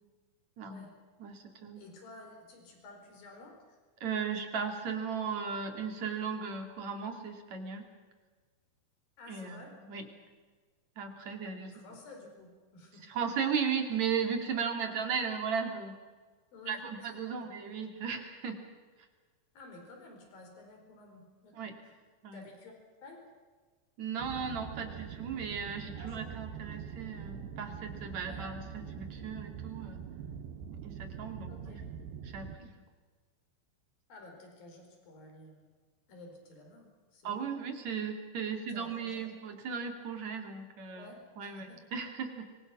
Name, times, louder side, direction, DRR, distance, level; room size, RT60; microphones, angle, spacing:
voice 1, 1.2-1.8 4.0-7.9 9.3-9.6 9.9-10.1 11.0-11.7 13.1-16.0 16.7-18.6 21.5-21.7 22.2-22.4 24.0-30.0 30.8-31.8 32.2-32.7 37.2-41.1 41.4-42.5, right 6 dB, 50° right, 4 dB, 3.5 m, -36 dB
voice 2, 1.8-3.8 9.2-9.7 11.7-13.1 14.8-15.0 16.5-17.1 19.5-21.7 22.3-22.7 23.0-23.2 26.0-26.4 28.2-28.4 31.5-31.9 34.1-35.6 36.1-37.6 38.7-39.3 40.9-41.8, left 2 dB, 65° left, 2 dB, 6.4 m, -52 dB
sound 1, 24.2-32.6, right 7 dB, 75° right, 3.1 m, -44 dB
24.5 x 24.5 x 6.1 m, 1.4 s
omnidirectional pair, 4.5 m